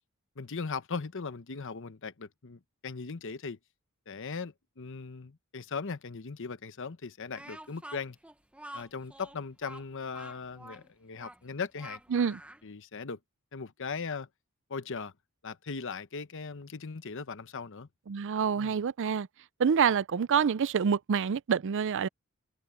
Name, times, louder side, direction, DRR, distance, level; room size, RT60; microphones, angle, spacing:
voice 1, 0.4-3.6 4.1-8.2 8.7-12.0 12.6-13.2 13.5-14.3 14.7-15.1 15.4-17.9 18.5-18.8, left 5 dB, 60° left, 0.9 m, -39 dB
Speech, 7.3-12.7, right 1 dB, 5° right, 1.0 m, -48 dB
voice 2, 18.1-19.3 19.6-22.1, right 7 dB, 60° right, 0.4 m, -27 dB
open air
head